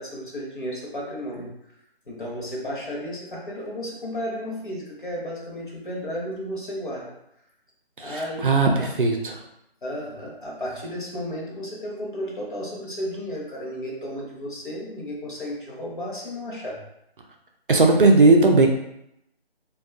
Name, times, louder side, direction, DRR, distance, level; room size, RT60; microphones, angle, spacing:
voice 1, 0.0-1.5 2.1-7.1 8.0-8.9 9.8-16.8, equal, 50° left, -3 dB, 0.8 m, -33 dB
voice 2, 8.0-9.4 17.7-18.7, right 3 dB, 55° right, 2 dB, 0.4 m, -17 dB
2.4 x 2.3 x 2.3 m, 0.79 s
figure-of-eight pair, 155°, 31 cm